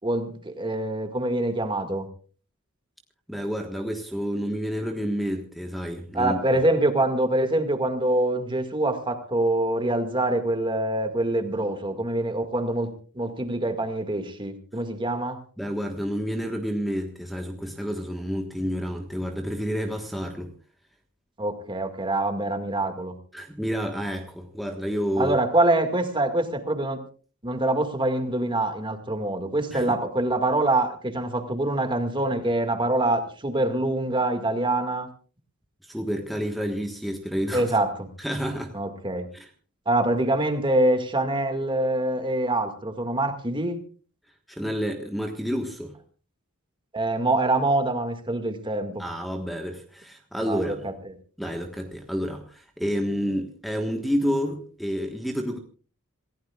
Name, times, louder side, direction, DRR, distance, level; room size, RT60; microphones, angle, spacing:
voice 1, 0.0-2.1 6.1-15.4 21.4-23.1 25.2-27.0 27.4-35.1 37.5-38.1 38.7-39.3 39.9-43.8 46.9-49.0 50.5-50.9, right 2 dB, 25° right, 7 dB, 2.1 m, -25 dB
voice 2, 3.3-6.4 15.6-20.5 23.3-25.4 29.7-29.9 35.9-37.7 38.2-38.7 39.3-39.5 44.5-45.9 49.0-50.9 51.4-55.6, equal, ahead, 1 dB, 1.4 m, -29 dB
27.5 x 16.0 x 2.4 m, 0.40 s
head